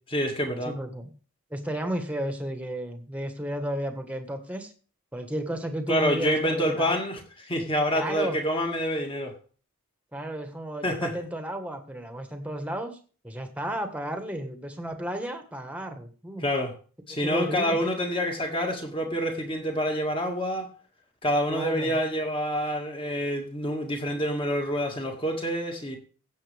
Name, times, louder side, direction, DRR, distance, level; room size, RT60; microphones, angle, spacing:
voice 1, 0.1-0.7 5.9-9.3 10.8-11.1 16.4-16.7 17.1-20.7 21.2-26.0, equal, 25° left, 2.2 m, -27 dB
voice 2, 0.6-1.1 1.5-4.7 5.1-6.9 7.9-8.4 10.1-13.0 13.2-16.4 17.2-17.8 21.5-22.0, right 1 dB, 5° right, 1.5 m, -33 dB
16.0 x 7.8 x 3.5 m
head